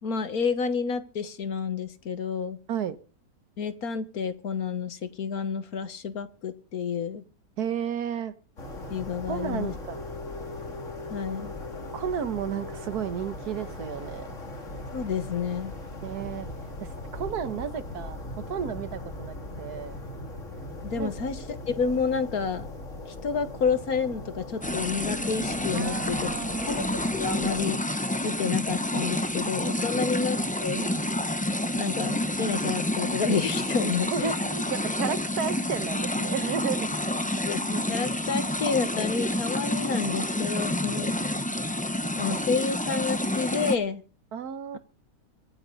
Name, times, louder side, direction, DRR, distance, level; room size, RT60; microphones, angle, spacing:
voice 1, 0.0-2.6 3.6-7.2 8.9-9.7 11.1-11.5 14.9-15.7 20.8-22.7 23.1-26.3 26.7-26.8 27.1-27.8 28.2-31.0 31.8-34.4 37.5-41.2 42.2-44.0, left 5 dB, 70° left, 1.9 m, -29 dB
voice 2, 7.6-8.3 9.3-10.0 11.9-14.2 16.0-16.5 16.8-18.2 18.5-20.0 21.0-21.1 25.7-26.9 29.9-30.1 34.1-37.0 44.3-44.8, right 8 dB, 80° right, 1.6 m, -33 dB
sound 1, 8.6-27.7, left 2 dB, 50° left, 3.0 m, -39 dB
sound 2, 24.6-43.8, left 1 dB, 10° left, 0.5 m, -29 dB
24.5 x 9.8 x 4.0 m
omnidirectional pair, 1.6 m